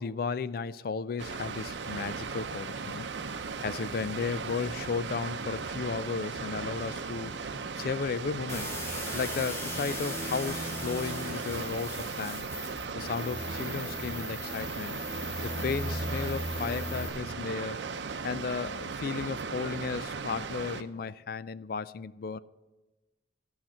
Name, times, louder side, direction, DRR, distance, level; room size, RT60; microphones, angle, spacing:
voice 1, 0.0-3.1 3.6-7.3 7.8-8.8 9.1-12.5 12.9-15.0 15.4-17.8 18.2-22.4, left 5 dB, 55° left, 0.4 m, -34 dB
Water, 1.2-20.8, right 5 dB, 85° right, 0.7 m, -37 dB
sound 1, 8.5-17.1, left 1 dB, 15° left, 2.4 m, -37 dB
13.5 x 5.7 x 7.5 m
head